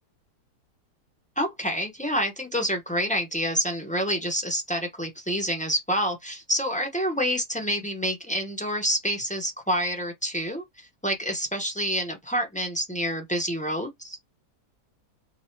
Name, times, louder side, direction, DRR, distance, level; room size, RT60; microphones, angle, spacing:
voice 1, 1.4-14.2, equal, 10° left, 0.4 m, -28 dB
3.0 x 2.7 x 4.4 m
omnidirectional pair, 1.9 m